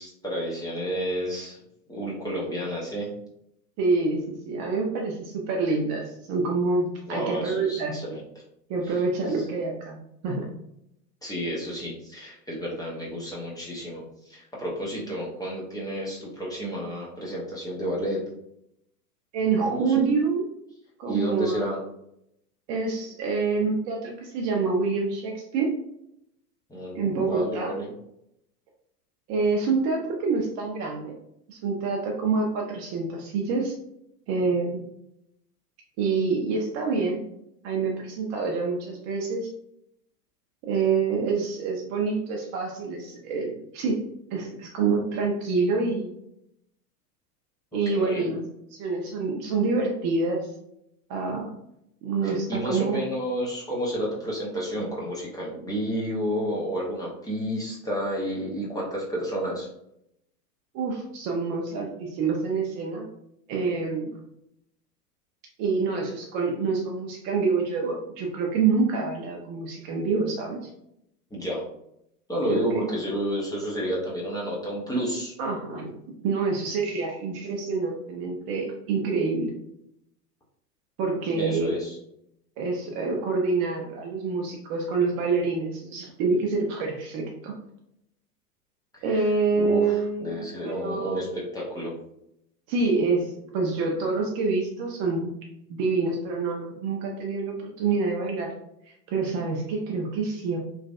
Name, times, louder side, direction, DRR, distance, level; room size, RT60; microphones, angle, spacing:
voice 1, 0.0-1.6 1.9-3.1 7.1-8.2 9.2-9.4 11.2-18.2 19.6-19.9 21.1-21.8 26.7-27.9 47.9-48.3 52.2-59.7 71.3-71.6 72.3-75.3 81.4-82.0 89.0-89.3 89.5-91.9, equal, 10° left, -5 dB, 0.6 m, -31 dB
voice 2, 3.8-8.0 8.7-10.0 10.2-10.5 19.3-20.4 21.0-21.6 22.7-25.7 26.9-27.7 29.3-31.2 31.5-33.7 34.3-34.9 36.0-37.2 37.6-39.5 40.6-44.0 44.3-46.1 47.7-48.4 48.7-50.5 51.1-51.5 52.0-53.0 60.7-63.1 63.5-64.2 65.6-70.7 72.5-72.9 75.4-76.0 76.2-79.6 81.0-81.8 82.6-87.6 89.0-91.2 92.7-95.3 95.7-98.5 99.1-100.6, right 4 dB, 35° right, 0 dB, 0.5 m, -27 dB
3.1 x 2.4 x 2.3 m, 0.77 s
hypercardioid pair, 95°, 48 cm